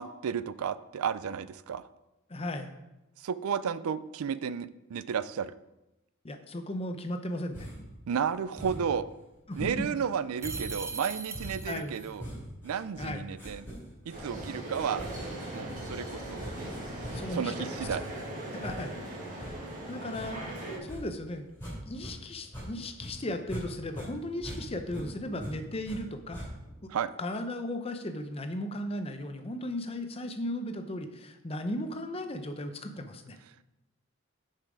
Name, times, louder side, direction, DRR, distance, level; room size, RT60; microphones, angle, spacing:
voice 1, 0.0-1.9 3.2-5.6 8.1-9.1 9.6-12.3 12.6-13.7 14.1-15.1 15.5-16.5 17.3-18.0 26.9-27.1, right 7 dB, 90° right, 16 dB, 0.4 m, -32 dB
voice 2, 2.3-2.7 6.2-7.7 9.5-9.7 11.7-11.9 13.0-13.3 17.1-17.7 18.5-18.9 19.4-19.5 19.9-20.5 20.8-21.5 21.8-26.4 27.2-33.4, left 1 dB, 30° left, 7 dB, 0.6 m, -36 dB
sound 1, 7.5-8.0 8.6-9.0 9.5-22.1 22.4-23.7 23.9-26.0 26.3-26.8, equal, 10° left, 2.8 m, -43 dB
sound 2, 10.4-12.1, right 4 dB, 15° right, 0.4 m, -39 dB
sound 3, 14.1-20.8, right 1 dB, 40° right, 1.8 m, -39 dB
7.0 x 5.6 x 4.9 m, 0.96 s
head